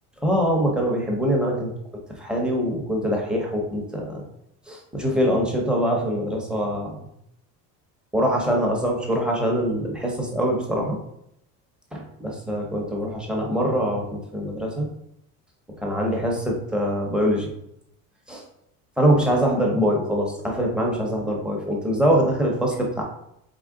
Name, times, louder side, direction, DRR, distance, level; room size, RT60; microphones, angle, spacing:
voice 1, 0.2-1.7 2.2-4.2 4.7-7.0 8.1-11.0 11.9-14.9 15.8-17.5 18.3-18.4 19.0-23.0, equal, 5° right, -1 dB, 0.6 m, -23 dB
3.9 x 3.7 x 3.6 m, 0.76 s
cardioid pair, 170°, 35 cm